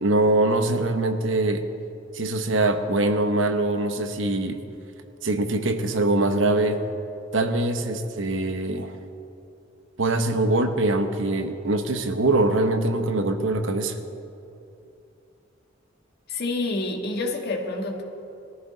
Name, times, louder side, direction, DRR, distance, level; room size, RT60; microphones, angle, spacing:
voice 1, 0.0-1.6 2.1-4.6 5.2-6.8 7.3-8.9 10.0-14.0, right 2 dB, 80° right, 7 dB, 1.1 m, -23 dB
voice 2, 16.3-18.0, left 2 dB, 55° left, 2 dB, 1.8 m, -28 dB
21.0 x 14.0 x 4.0 m, 2.7 s
head